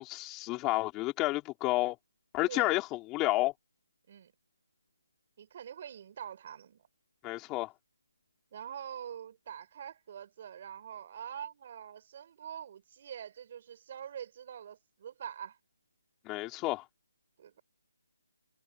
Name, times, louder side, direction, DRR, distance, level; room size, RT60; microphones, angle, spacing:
voice 1, 0.0-2.0 2.3-3.5 7.2-7.7 16.3-16.8, left 19 dB, 10° left, 3.5 m, -30 dB
voice 2, 5.4-6.8 8.5-15.6 17.4-17.6, right 9 dB, 25° right, 5.4 m, -44 dB
hypercardioid pair, 175°, 0 cm